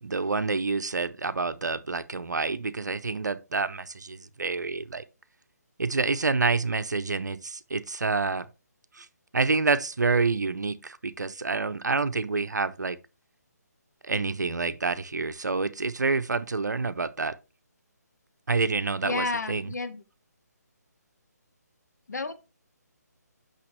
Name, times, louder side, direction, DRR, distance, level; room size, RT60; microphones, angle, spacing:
voice 1, 0.0-5.0 5.8-8.5 9.0-9.1 9.3-13.0 14.0-17.4 18.5-19.7, right 4 dB, 75° right, 0.8 m, -28 dB
voice 2, 19.0-20.0 22.1-22.3, left 3 dB, 70° left, 1.2 m, -31 dB
8.5 x 6.3 x 3.1 m
figure-of-eight pair, 150°, 9 cm